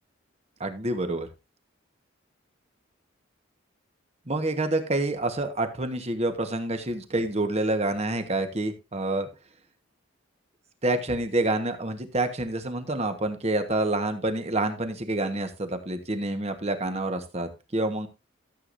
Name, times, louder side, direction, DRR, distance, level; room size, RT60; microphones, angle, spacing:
voice 1, 0.6-1.3 4.3-9.3 10.8-18.1, right 2 dB, 30° right, 7 dB, 1.2 m, -27 dB
13.5 x 7.8 x 2.6 m, 0.27 s
head